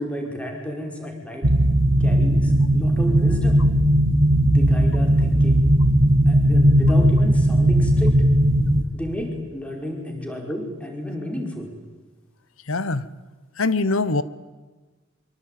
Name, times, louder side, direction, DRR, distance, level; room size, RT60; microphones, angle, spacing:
voice 1, 0.0-1.5 2.0-3.6 4.5-5.7 6.3-8.2 8.9-11.7, equal, 5° left, 2 dB, 5.0 m, -31 dB
sound 1, 1.4-8.8, right 1 dB, 65° right, 2.3 m, -17 dB
voice 2, 12.7-13.1 13.6-14.2, left 3 dB, 80° left, 16 dB, 1.2 m, -22 dB
25.0 x 25.0 x 9.2 m, 1.2 s
head